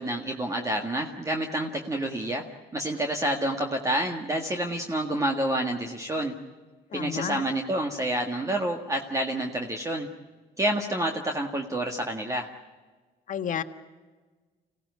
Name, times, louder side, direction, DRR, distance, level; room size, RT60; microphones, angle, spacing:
voice 1, 0.0-2.4 2.7-6.3 6.9-10.1 10.6-12.5, right 1 dB, 20° right, 3 dB, 1.8 m, -28 dB
voice 2, 6.9-7.4 13.3-13.6, left 8 dB, 50° left, 8 dB, 1.5 m, -31 dB
25.5 x 17.0 x 9.5 m, 1.4 s
cardioid pair, 110°, 17 cm